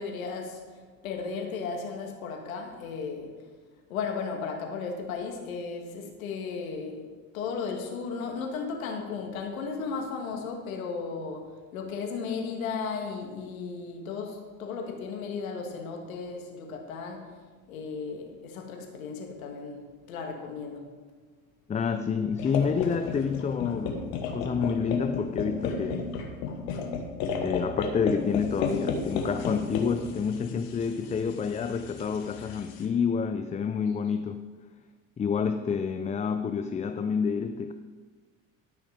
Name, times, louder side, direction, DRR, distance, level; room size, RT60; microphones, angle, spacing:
voice 1, 0.0-3.3 3.9-7.1 7.3-17.4 17.7-20.9, left 5 dB, 85° left, 2 dB, 1.8 m, -35 dB
voice 2, 21.7-26.1 27.4-34.4 35.2-37.7, left 6 dB, 20° left, 8 dB, 0.4 m, -28 dB
sound 1, 22.4-32.8, left 4 dB, 70° left, 1.5 m, -33 dB
12.5 x 6.0 x 5.2 m, 1.4 s
hypercardioid pair, 80°, 40 cm